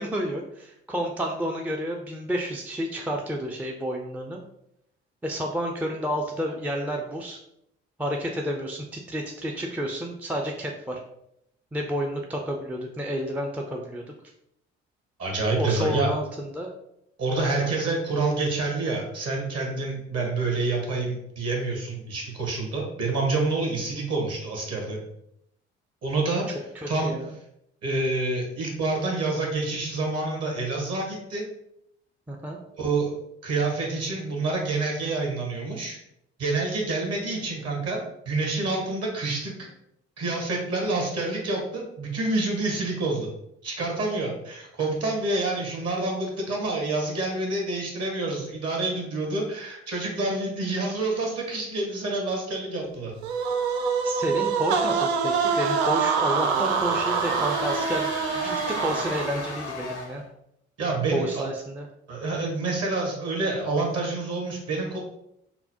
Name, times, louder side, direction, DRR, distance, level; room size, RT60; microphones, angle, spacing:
voice 1, 0.0-4.4 5.2-7.4 8.0-11.0 11.7-14.1 15.6-16.7 17.6-17.8 26.8-27.3 32.3-32.6 54.0-60.2 61.1-61.9, equal, 5° right, 1 dB, 0.4 m, -30 dB
voice 2, 15.2-16.1 17.2-25.0 26.0-26.6 26.9-27.2 27.8-31.5 32.8-33.1 33.4-36.0 36.4-39.7 40.2-43.3 43.6-53.1 60.8-61.4 62.1-65.0, right 3 dB, 45° right, 0 dB, 1.4 m, -27 dB
sound 1, 53.2-59.6, right 6 dB, 75° right, 0.5 m, -25 dB
sound 2, 55.3-60.3, left 3 dB, 85° left, 0.8 m, -36 dB
5.6 x 2.1 x 2.8 m, 0.77 s
figure-of-eight pair, 45°, 34 cm